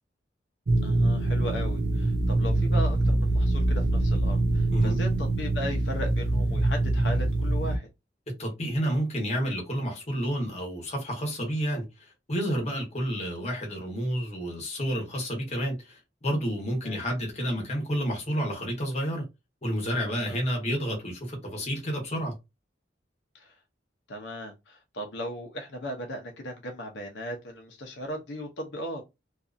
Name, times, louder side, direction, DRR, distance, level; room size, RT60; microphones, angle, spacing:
sound 1, 0.7-7.8, right 2 dB, 60° right, 0.5 m, -24 dB
voice 1, 0.8-7.9 16.8-17.0 20.3-20.6 23.3-23.5 24.1-29.0, equal, 75° left, 0.7 m, -37 dB
voice 2, 8.4-19.3 19.6-22.3, equal, 35° left, 1.0 m, -30 dB
2.6 x 2.4 x 2.4 m
head